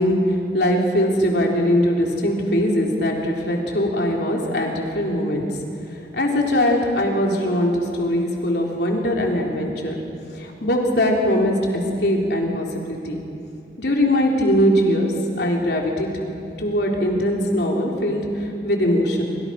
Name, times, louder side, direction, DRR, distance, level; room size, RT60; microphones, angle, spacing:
voice 1, 0.0-5.4 6.1-10.0 10.3-13.2 13.8-16.1 16.6-19.2, equal, 65° left, 0 dB, 4.0 m, -21 dB
28.0 x 26.5 x 6.0 m, 2.6 s
head